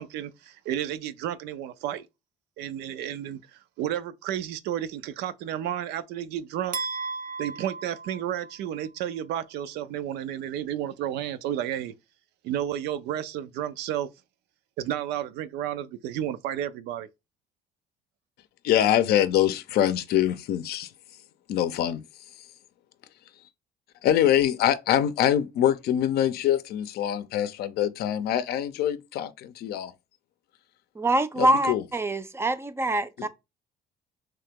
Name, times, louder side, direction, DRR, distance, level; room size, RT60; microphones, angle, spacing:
voice 1, 0.0-2.1 2.6-6.8 7.4-11.9 12.4-14.1 14.8-17.1, right 11 dB, 85° right, 0.4 m, -32 dB
sound 1, 6.7-8.9, right 4 dB, 50° right, 0.7 m, -35 dB
voice 2, 18.6-20.9 21.5-22.0 24.0-29.9 31.4-31.8 33.2-33.3, left 11 dB, 70° left, 0.5 m, -24 dB
voice 3, 31.0-33.3, right 1 dB, 15° right, 0.4 m, -25 dB
3.2 x 2.8 x 3.5 m
cardioid pair, 110°, 17 cm